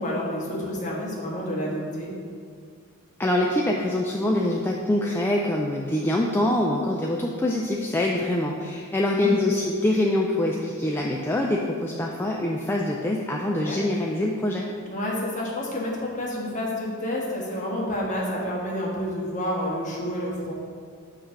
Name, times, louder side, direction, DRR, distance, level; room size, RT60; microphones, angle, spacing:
voice 1, 0.0-2.1 9.1-9.4 13.4-13.8 14.9-20.5, left 1 dB, 35° left, -4 dB, 1.4 m, -29 dB
voice 2, 3.2-14.7, left 1 dB, 10° left, -1 dB, 0.3 m, -24 dB
7.9 x 3.2 x 5.7 m, 2.1 s
head